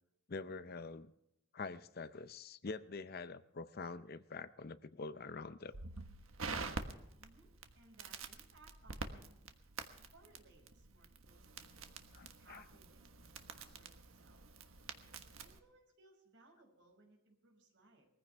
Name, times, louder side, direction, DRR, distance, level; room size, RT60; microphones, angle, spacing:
voice 1, 0.3-1.1 1.5-5.8 12.1-12.6, left 4 dB, 50° left, 0.6 m, -46 dB
Crackle, 5.7-15.6, right 4 dB, 90° right, 1.4 m, -48 dB
voice 2, 7.2-9.4 10.1-11.9 12.4-14.4 15.4-18.1, right 2 dB, 60° right, 5.7 m, -65 dB
21.5 x 15.0 x 3.4 m
head